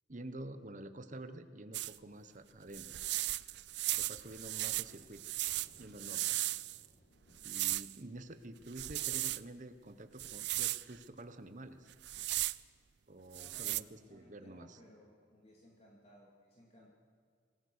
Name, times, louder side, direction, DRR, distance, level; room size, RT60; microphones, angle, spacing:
voice 1, 0.1-3.0 3.9-5.2 5.8-6.4 7.4-11.9 13.1-14.8, right 1 dB, 45° right, 10 dB, 1.1 m, -49 dB
sound 1, 1.7-2.0 2.7-6.9 7.4-8.0 8.7-9.4 10.2-10.8 11.9-12.6 13.3-13.8, right 17 dB, 65° right, 0.4 m, -36 dB
Thunder / Rain, 4.7-11.0, equal, 85° left, 6.2 m, -68 dB
voice 2, 13.3-16.9, equal, 35° left, -3 dB, 2.9 m, -61 dB
25.0 x 16.5 x 6.6 m, 2.1 s
head